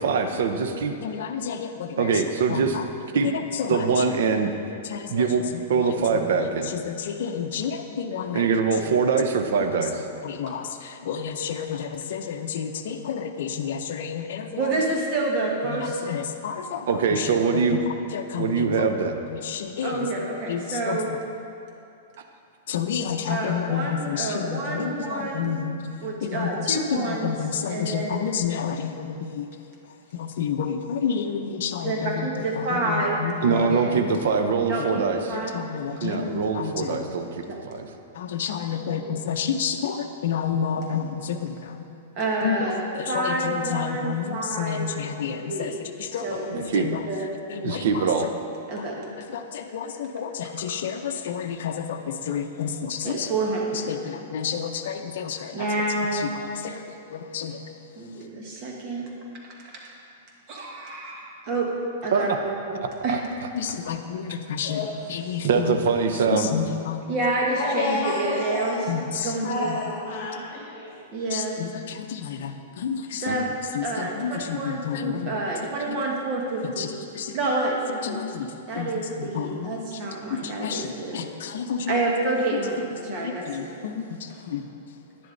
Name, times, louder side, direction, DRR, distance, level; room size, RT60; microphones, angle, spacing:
voice 1, 0.0-0.9 2.0-2.8 3.1-3.3 3.7-4.5 5.1-5.4 5.7-6.7 8.3-9.9 16.9-17.8 18.4-19.2 33.4-35.2 36.0-37.9 46.5-46.9 47.6-48.3 62.1-62.2 63.1-63.2 65.4-66.5 73.3-73.4, right 5 dB, 65° right, 6 dB, 0.8 m, -23 dB
voice 2, 1.0-2.2 2.5-2.9 3.2-4.5 4.8-8.5 8.8-8.9 9.7-14.8 15.7-18.8 19.3-21.0 22.7-25.8 26.2-29.5 29.9-34.0 35.3-37.2 38.1-41.9 42.4-47.1 47.5-48.3 48.8-48.9 49.3-53.3 53.7-55.7 56.1-57.6 58.2-58.3 60.5-60.7 63.5-65.8 66.3-67.1 68.9-69.8 70.1-70.3 71.3-73.4 73.7-75.4 75.9-76.0 76.6-77.4 78.0-78.9 79.2-80.0 80.3-82.1 82.5-82.6 83.1-84.7, left 7 dB, 60° left, 4 dB, 0.7 m, -31 dB
voice 3, 14.6-16.0 19.8-21.1 23.3-25.6 26.0-27.4 27.7-28.4 31.8-34.0 34.7-35.5 36.1-36.2 37.5-37.6 38.9-39.0 42.1-44.9 45.4-45.8 46.2-46.6 46.9-47.3 48.7-49.0 53.0-54.1 55.5-56.3 57.9-59.1 59.6-59.9 60.5-61.7 62.0-63.2 67.1-68.9 69.1-69.7 71.1-71.5 73.2-73.5 73.8-76.9 77.3-78.2 78.7-81.2 81.9-83.8, right 2 dB, 30° right, -2 dB, 1.5 m, -28 dB
voice 4, 67.5-68.7 69.4-71.0, left 3 dB, 45° left, -4 dB, 1.9 m, -29 dB
11.0 x 10.0 x 4.0 m, 2.6 s
supercardioid pair, 165°, 0 cm